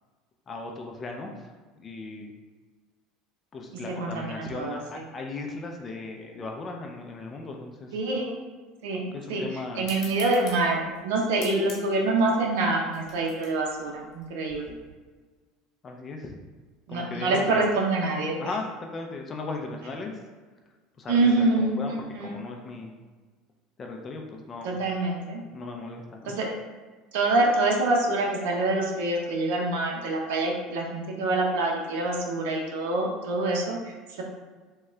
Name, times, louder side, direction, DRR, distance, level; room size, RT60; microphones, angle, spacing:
voice 1, 0.5-1.5 1.8-2.3 3.5-7.9 9.1-9.9 15.8-16.4 16.9-17.7 18.4-20.2 21.0-21.9 22.2-23.0 23.8-24.8 25.5-26.4, left 3 dB, 25° left, 2 dB, 0.4 m, -37 dB
voice 2, 3.7-4.8 7.9-8.4 8.8-14.7 16.9-18.4 21.1-22.4 24.6-25.4 26.3-26.6 27.1-34.2, right 2 dB, 85° right, 0 dB, 0.6 m, -26 dB
sound 1, 9.8-14.9, left 3 dB, 45° left, 1.0 m, -47 dB
3.6 x 2.2 x 3.1 m, 1.4 s
supercardioid pair, 135°, 0 cm